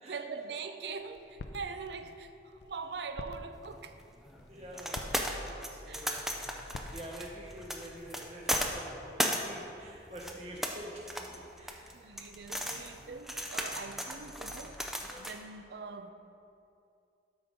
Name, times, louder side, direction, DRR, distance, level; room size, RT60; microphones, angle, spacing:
voice 1, 0.0-4.0 5.4-6.1 11.9-14.8 15.2-16.1, right 4 dB, 75° right, 9 dB, 0.5 m, -43 dB
sound 1, 0.9-8.7, left 2 dB, 80° left, 0.5 m, -49 dB
sound 2, 3.7-15.4, equal, ahead, 0.4 m, -37 dB
voice 2, 4.5-5.4 5.7-6.6 6.8-12.1, right 1 dB, 35° right, -3 dB, 1.3 m, -47 dB
12.5 x 5.2 x 3.7 m, 2.6 s
head